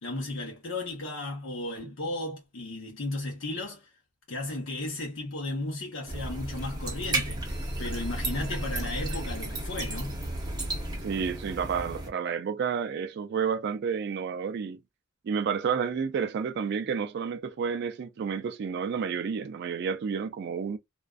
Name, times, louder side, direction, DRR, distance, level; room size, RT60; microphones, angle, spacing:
voice 1, 0.0-3.9 4.3-7.4 7.8-10.3, left 2 dB, 70° left, 0.8 m, -35 dB
sound 1, 6.1-12.1, right 1 dB, 20° right, 0.7 m, -33 dB
voice 2, 11.0-14.8 15.2-20.8, right 6 dB, 50° right, 0.3 m, -30 dB
2.4 x 2.2 x 2.3 m
head